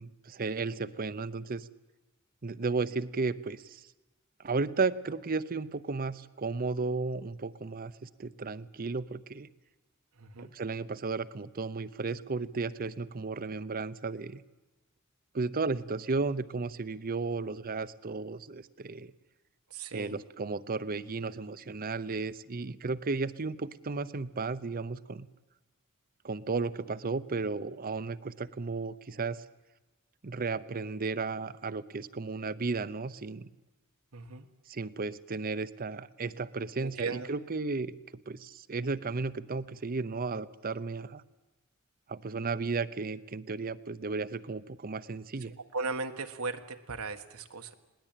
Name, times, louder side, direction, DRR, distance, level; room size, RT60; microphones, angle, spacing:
voice 1, 0.0-1.7 2.4-3.9 4.4-9.5 10.4-14.4 15.3-19.1 19.9-25.3 26.2-29.4 30.2-33.5 34.7-37.9 38.3-41.2 42.1-45.5, right 4 dB, 45° right, 16 dB, 0.7 m, -34 dB
voice 2, 10.2-10.5 19.7-20.1 34.1-34.5 36.8-37.3 45.7-47.7, right 3 dB, 90° right, 6 dB, 1.4 m, -37 dB
21.0 x 18.0 x 9.0 m, 1.1 s
head